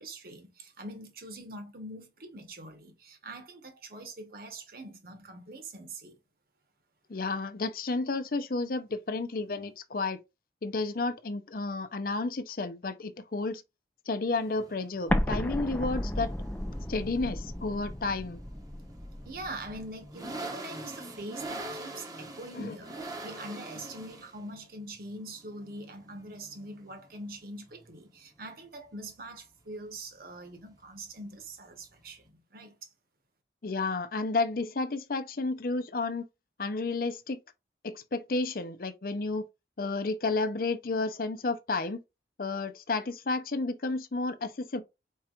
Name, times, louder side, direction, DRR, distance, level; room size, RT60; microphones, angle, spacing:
voice 1, 0.0-6.2 19.2-32.9, right 1 dB, 55° right, 1.3 m, -43 dB
voice 2, 7.1-10.2 10.6-13.6 14.1-16.3 16.9-18.4 22.5-22.8 33.6-36.3 36.6-37.4 37.8-39.5 39.8-42.0 42.4-44.8, left 3 dB, 55° left, 0.6 m, -31 dB
sound 1, 14.3-32.3, right 2 dB, 20° right, 1.0 m, -45 dB
Explosion, 15.1-19.9, left 1 dB, 10° left, 0.5 m, -33 dB
4.6 x 4.4 x 2.5 m
head